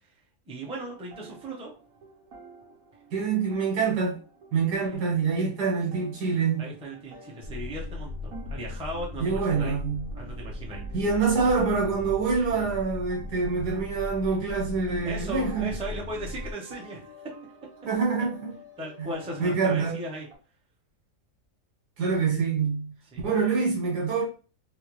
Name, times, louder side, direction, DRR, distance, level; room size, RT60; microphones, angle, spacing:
voice 1, 0.5-1.7 4.8-5.0 6.6-9.8 10.1-11.0 15.0-17.1 18.8-20.3 23.1-23.2, right 1 dB, 5° right, 0.5 m, -37 dB
sound 1, 0.6-20.4, right 2 dB, 60° right, 1.4 m, -51 dB
voice 2, 3.1-4.2 4.5-6.6 9.2-10.0 10.9-15.7 17.9-18.6 19.0-19.1 19.4-20.0 22.0-22.9 23.2-24.2, right 5 dB, 85° right, 1.7 m, -26 dB
sound 2, 7.4-16.5, left 2 dB, 65° left, 0.7 m, -38 dB
3.9 x 2.1 x 3.1 m
omnidirectional pair, 1.7 m